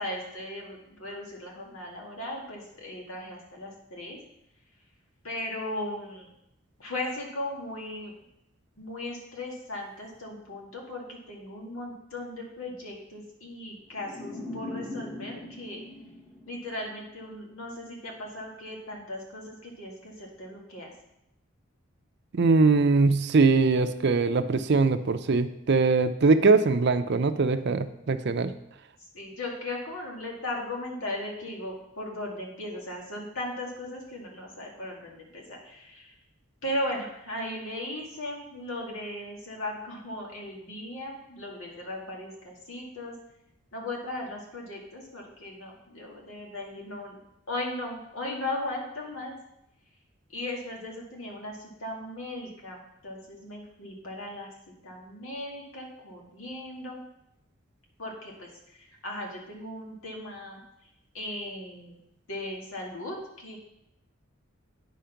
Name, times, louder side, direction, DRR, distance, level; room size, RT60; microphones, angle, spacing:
voice 1, 0.0-4.2 5.2-6.3 6.8-8.1 8.8-15.8 16.5-20.9 29.1-36.1 36.6-43.1 43.7-47.2 47.5-49.4 50.3-54.5 54.8-57.0 58.0-58.5 58.8-60.6 61.1-62.0 62.3-63.6, left 1 dB, 85° left, -1 dB, 2.2 m, -37 dB
sound 1, 13.9-17.1, left 1 dB, 5° left, 1.0 m, -40 dB
voice 2, 22.3-28.5, right 4 dB, 55° right, 10 dB, 0.5 m, -22 dB
9.3 x 5.1 x 5.8 m, 0.82 s
head